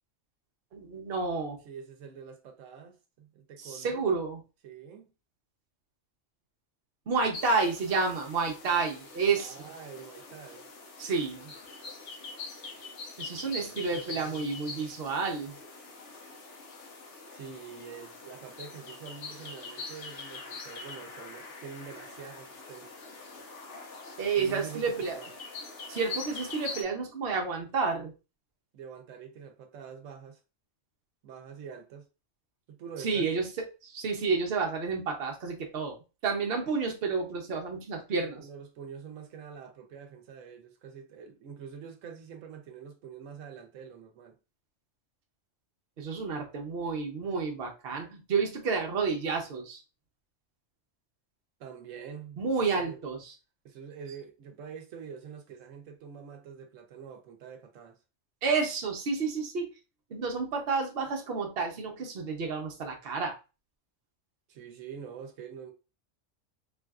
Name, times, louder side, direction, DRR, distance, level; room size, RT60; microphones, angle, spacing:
voice 1, 0.7-1.6 3.6-4.4 7.1-9.7 11.0-11.5 13.2-15.6 24.2-25.2 25.9-28.1 33.0-33.5 33.8-36.0 36.2-38.5 46.0-49.8 52.4-53.3 58.4-59.7 60.1-63.4, right 4 dB, 55° right, 0.9 m, -30 dB
voice 2, 1.7-4.0 4.6-5.1 9.3-10.7 13.4-14.5 17.3-23.0 24.4-25.3 28.7-30.4 31.2-32.1 32.7-33.5 38.4-44.4 51.6-53.0 53.6-58.0 64.5-65.7, right 7 dB, 85° right, 1.0 m, -46 dB
sound 1, 7.3-26.8, left 3 dB, 70° left, 1.0 m, -44 dB
3.3 x 2.5 x 2.3 m
omnidirectional pair, 1.3 m